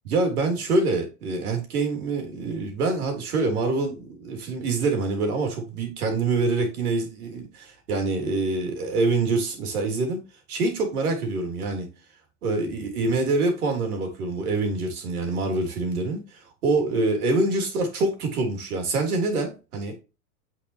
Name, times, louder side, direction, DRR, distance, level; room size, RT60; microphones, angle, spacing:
voice 1, 0.1-10.2 10.5-11.9 12.4-19.9, right 3 dB, 70° right, 3.5 m, -25 dB
8.9 x 5.5 x 3.0 m
hypercardioid pair, 105°, 47 cm